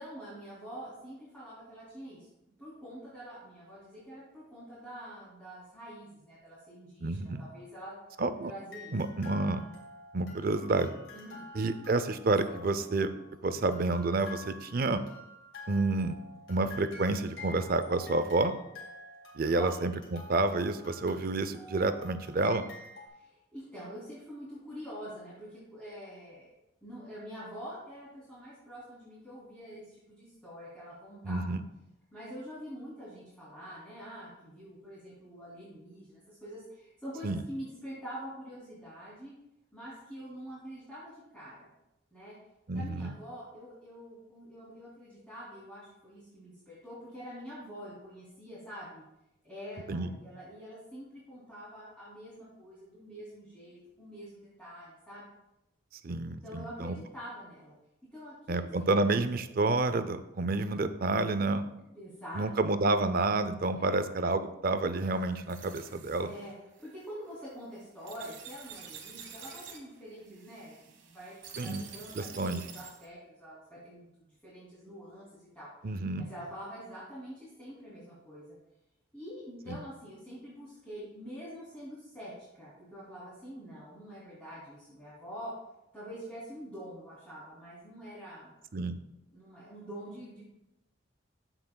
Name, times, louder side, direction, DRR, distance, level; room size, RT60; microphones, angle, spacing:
voice 1, 0.0-2.3 2.6-7.9 8.4-9.0 11.1-11.5 19.5-19.7 23.1-26.5 26.8-31.4 32.1-39.3 39.7-41.7 42.1-42.3 42.7-49.0 49.4-55.2 56.4-57.7 58.1-59.1 59.3-59.4 61.9-62.5 63.7-64.0 66.2-66.5 66.8-78.5 79.1-85.5 85.9-88.5 89.3-90.4, equal, 5° left, -11 dB, 2.9 m, -46 dB
voice 2, 7.0-7.4 8.2-8.5 8.9-9.6 10.1-10.9 11.5-13.1 13.4-15.0 15.7-16.2 16.5-18.5 19.3-22.6 31.2-31.6 37.2-37.4 42.7-43.1 49.9-50.1 56.0-57.0 58.5-61.7 62.3-66.3 71.6-71.8 72.2-72.6 75.8-76.3 79.7-79.8 88.7-89.0, right 2 dB, 50° right, 11 dB, 0.5 m, -29 dB
sound 1, 8.4-8.5 8.7-13.3 13.7-23.1, left 2 dB, 65° left, 2.4 m, -49 dB
sound 2, 65.0-73.1, right 7 dB, 65° right, 1.4 m, -49 dB
14.5 x 5.9 x 2.3 m, 0.88 s
head